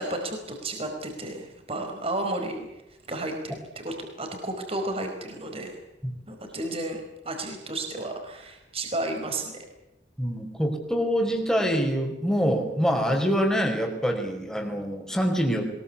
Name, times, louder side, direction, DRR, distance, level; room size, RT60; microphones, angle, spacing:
voice 1, 0.0-2.7 3.1-5.8 6.3-9.6, right 2 dB, 35° right, 4 dB, 4.8 m, -32 dB
voice 2, 10.2-15.7, equal, 5° left, 3 dB, 4.6 m, -25 dB
23.0 x 21.5 x 8.4 m, 0.92 s
head